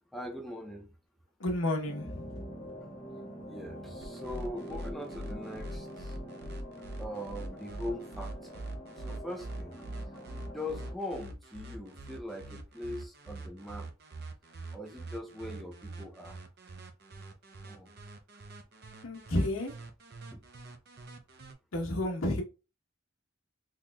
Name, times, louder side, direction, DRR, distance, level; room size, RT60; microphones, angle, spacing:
voice 1, 0.1-0.9 3.5-6.2 7.0-8.6 9.0-9.8 10.5-13.9 14.7-16.4 17.6-17.9 20.3-20.4, left 1 dB, ahead, 0.5 m, -41 dB
voice 2, 1.4-2.4 19.0-19.7 21.7-22.4, left 1 dB, 90° left, 0.9 m, -31 dB
sound 1, 1.8-10.9, equal, 25° left, 1.4 m, -45 dB
sound 2, 4.0-21.5, right 1 dB, 50° right, 0.6 m, -44 dB
3.8 x 3.0 x 2.2 m
head